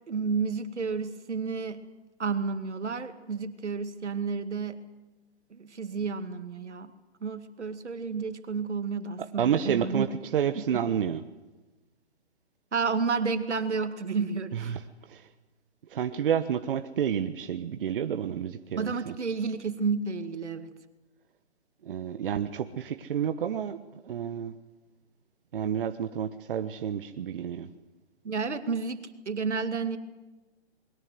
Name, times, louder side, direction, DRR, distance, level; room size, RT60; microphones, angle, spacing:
voice 1, 0.1-1.8 2.2-4.8 5.5-6.9 7.2-10.1 10.6-10.8 12.7-14.8 18.7-20.7 28.2-30.0, right 5 dB, 80° right, 10 dB, 2.3 m, -31 dB
voice 2, 9.4-11.2 14.5-14.8 15.1-15.3 15.9-19.1 21.8-23.8 24.0-24.5 25.5-27.7, right 8 dB, 50° right, 9 dB, 1.2 m, -30 dB
21.5 x 17.5 x 9.4 m, 1.1 s
hypercardioid pair, 145°, 34 cm